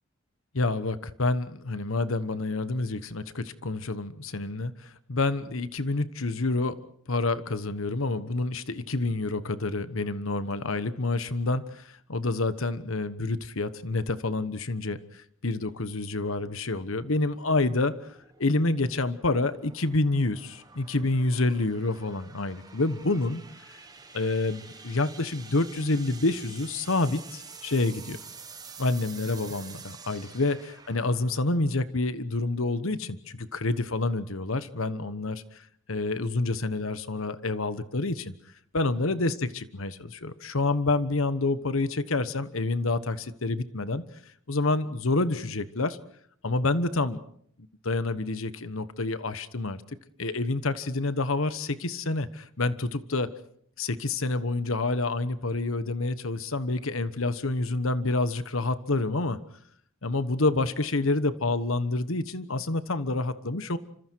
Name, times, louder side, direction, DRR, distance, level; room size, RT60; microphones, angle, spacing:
voice 1, 0.5-6.8 7.1-18.0 18.4-23.4 24.1-28.2 28.8-38.3 38.7-44.0 44.5-46.0 46.4-47.2 47.8-49.8 50.2-53.3 53.8-59.4 60.0-63.8, left 2 dB, 75° left, 13 dB, 1.2 m, -28 dB
sound 1, 16.8-32.2, right 5 dB, 20° right, 1.5 m, -49 dB
28.0 x 26.0 x 4.7 m, 0.64 s
head